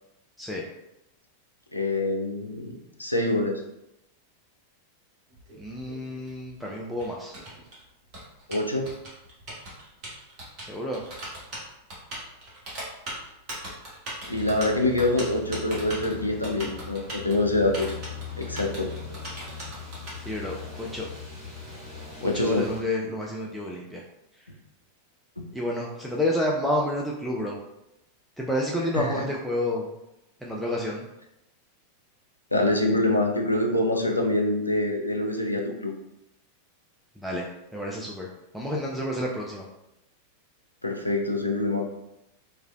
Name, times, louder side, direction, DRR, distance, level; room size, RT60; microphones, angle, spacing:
voice 1, 1.7-2.7 3.0-3.6 8.5-8.9 14.3-17.9 18.4-18.9 22.2-22.7 25.4-25.5 28.9-29.2 32.5-35.9 40.8-41.9, left 2 dB, 85° left, 2 dB, 0.4 m, -25 dB
Typing, 5.3-20.1, right 1 dB, 35° right, 1.1 m, -40 dB
voice 2, 5.6-7.3 10.7-11.0 20.3-21.1 22.2-24.0 25.5-27.6 28.4-29.9 30.4-31.0 37.2-37.5 37.7-38.3 38.5-39.7, left 1 dB, ahead, -3 dB, 0.3 m, -29 dB
sound 1, 14.3-22.8, left 5 dB, 15° left, 1.5 m, -40 dB
3.1 x 2.4 x 2.2 m, 0.87 s
figure-of-eight pair, 90°, 0 cm